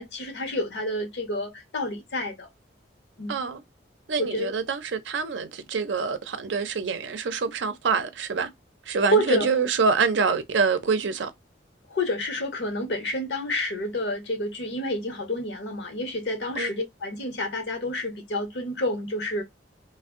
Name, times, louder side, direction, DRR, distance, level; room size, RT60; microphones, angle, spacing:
voice 1, 0.0-2.5 3.2-3.4 4.2-4.5 9.1-9.6 11.9-19.4, left 1 dB, 65° left, 0.8 m, -29 dB
voice 2, 3.3-3.6 4.1-8.5 8.9-11.3 16.6-16.7, right 5 dB, 80° right, 0.5 m, -26 dB
2.5 x 2.1 x 3.5 m
head